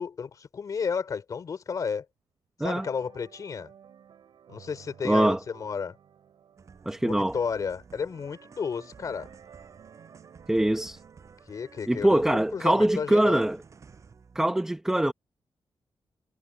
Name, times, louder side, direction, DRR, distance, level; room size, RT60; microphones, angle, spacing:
voice 1, 0.0-2.1 2.6-3.7 4.5-6.0 7.0-9.3 11.5-13.4, left 6 dB, 45° left, 3.9 m, -32 dB
sound 1, 2.7-11.4, right 8 dB, 75° right, 4.7 m, -55 dB
voice 2, 5.0-5.4 6.9-7.4 10.5-11.0 11.9-13.6 14.3-15.1, right 1 dB, 5° right, 0.8 m, -23 dB
sound 2, 6.6-14.5, right 5 dB, 40° right, 6.7 m, -53 dB
wide cardioid pair, 175°, 8 cm